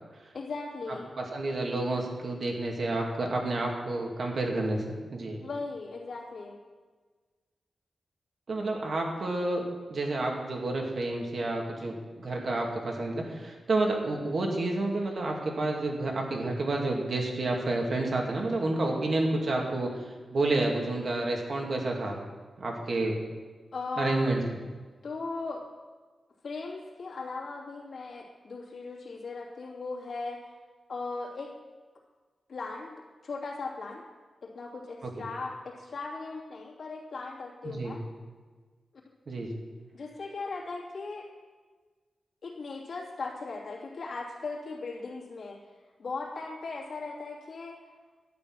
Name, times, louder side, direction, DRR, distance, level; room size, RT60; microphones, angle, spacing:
voice 1, 0.3-1.1 5.4-6.6 23.7-24.3 25.0-25.6 26.4-30.4 30.9-31.5 32.5-34.0 34.4-38.0 39.9-41.3 42.4-45.6 46.0-47.8, left 3 dB, 65° left, -3 dB, 2.8 m, -38 dB
voice 2, 1.2-5.4 8.5-22.2 22.6-23.2 24.0-24.4 35.0-35.1 37.6-38.0 39.3-39.5, right 2 dB, 55° right, 0 dB, 2.4 m, -30 dB
12.0 x 9.3 x 6.2 m, 1.4 s
wide cardioid pair, 110°, 0 cm